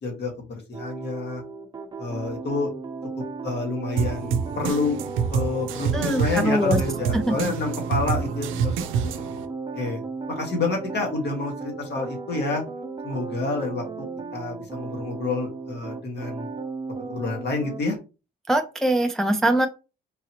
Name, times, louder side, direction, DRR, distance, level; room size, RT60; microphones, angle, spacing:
voice 1, 0.0-1.4 2.0-2.7 3.4-5.0 5.3-8.7 9.0-9.3 9.7-10.0 10.4-12.6 13.0-14.0 14.3-16.5 17.1-18.0, left 3 dB, 60° left, 1 dB, 1.6 m, -28 dB
sound 1, 0.7-17.8, right 4 dB, 20° right, 0.8 m, -36 dB
sound 2, 4.0-9.5, right 7 dB, 90° right, 0.5 m, -27 dB
voice 2, 5.9-6.8 7.4-7.5 18.5-19.7, right 1 dB, ahead, 6 dB, 0.4 m, -22 dB
3.8 x 2.8 x 2.9 m, 0.31 s
cardioid pair, 90°, 20 cm